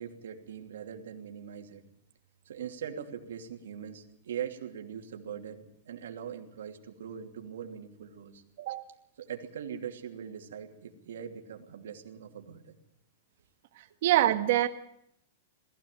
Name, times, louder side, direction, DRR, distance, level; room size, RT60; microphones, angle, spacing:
voice 1, 0.0-1.8 2.4-8.4 9.2-12.7, right 8 dB, 80° right, 4 dB, 2.8 m, -41 dB
voice 2, 14.0-14.7, right 13 dB, 45° right, 8 dB, 1.6 m, -24 dB
21.0 x 15.0 x 9.1 m, 0.75 s
supercardioid pair, 175°, 0 cm